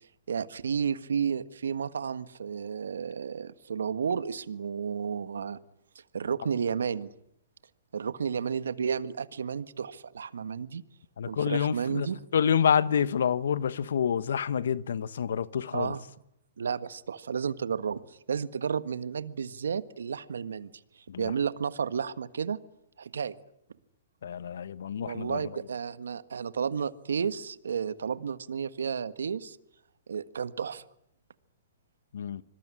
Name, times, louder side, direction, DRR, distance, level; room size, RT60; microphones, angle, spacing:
voice 1, 0.3-5.6 6.1-7.1 7.9-10.8 11.3-12.2 15.7-16.0 16.6-20.7 21.2-22.6 23.0-23.3 25.0-29.6 30.1-30.8, right 6 dB, 80° right, 1.5 m, -32 dB
voice 2, 11.2-12.1 12.3-15.9 21.1-21.2 24.2-25.4 32.1-32.4, left 8 dB, 75° left, 1.3 m, -27 dB
26.5 x 21.5 x 9.9 m
hypercardioid pair, 130°, 0 cm